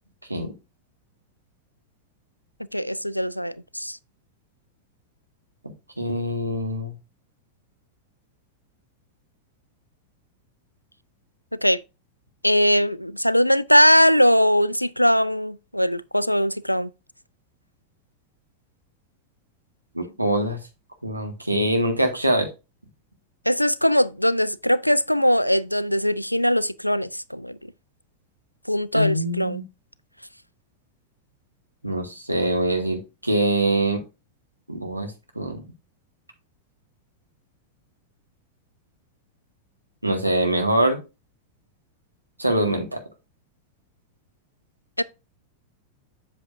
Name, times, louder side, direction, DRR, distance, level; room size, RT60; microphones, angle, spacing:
voice 1, 2.7-4.0 11.6-11.8 12.4-16.9 23.5-27.6 28.7-29.6 45.0-45.1, equal, 90° left, 0.3 m, -20 dB
voice 2, 6.0-6.9 19.9-20.6 21.0-22.5 28.9-29.6 31.8-34.0 34.7-35.6 40.0-41.0 42.4-43.0, right 1 dB, 85° right, 1.6 m, -24 dB
7.8 x 7.1 x 2.5 m
figure-of-eight pair, 90°, 0 cm